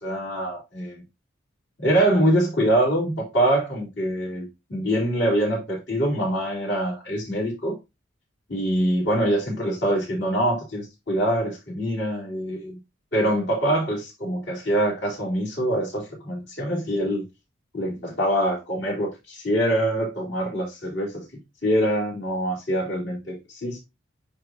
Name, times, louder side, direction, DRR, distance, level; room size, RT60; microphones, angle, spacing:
voice 1, 0.0-1.0 1.8-7.8 8.5-12.8 13.1-17.2 17.7-21.2 21.6-23.8, right 1 dB, 60° left, 4.2 m, -24 dB
10.0 x 3.5 x 3.0 m
head